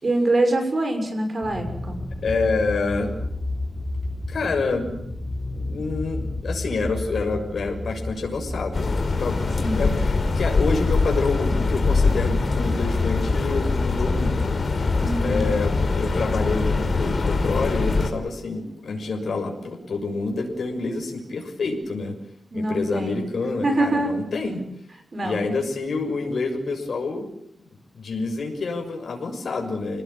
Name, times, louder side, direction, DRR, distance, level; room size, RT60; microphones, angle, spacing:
voice 1, 0.0-2.0 9.6-10.0 15.0-15.5 22.5-23.2 23.6-24.1 25.1-25.4, right 2 dB, 35° right, 6 dB, 6.4 m, -24 dB
sound 1, 1.4-16.2, left 2 dB, ahead, 5.9 m, -32 dB
voice 2, 2.2-3.1 4.3-5.2 5.5-14.5 15.2-22.2 22.5-24.6 25.2-27.3 27.6-30.0, left 3 dB, 75° left, 2 dB, 6.6 m, -27 dB
sound 2, 8.7-18.1, left 3 dB, 45° left, 4.4 m, -23 dB
28.5 x 19.5 x 9.0 m, 0.70 s
wide cardioid pair, 165°, 0 cm